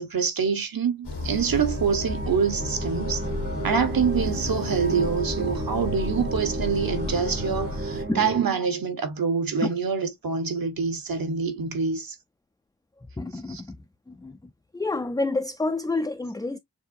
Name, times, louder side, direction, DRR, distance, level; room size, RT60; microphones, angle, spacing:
voice 1, 0.0-3.2 3.6-12.1 13.5-13.6, right 6 dB, 60° right, 1.2 m, -26 dB
sound 1, 1.0-8.0, left 3 dB, 85° left, 1.3 m, -33 dB
sound 2, 1.1-8.5, right 3 dB, 30° right, 0.7 m, -33 dB
voice 2, 13.2-13.8 14.1-14.4 14.7-16.6, left 2 dB, 10° left, 0.3 m, -28 dB
6.8 x 2.6 x 2.5 m
wide cardioid pair, 115°, 40 cm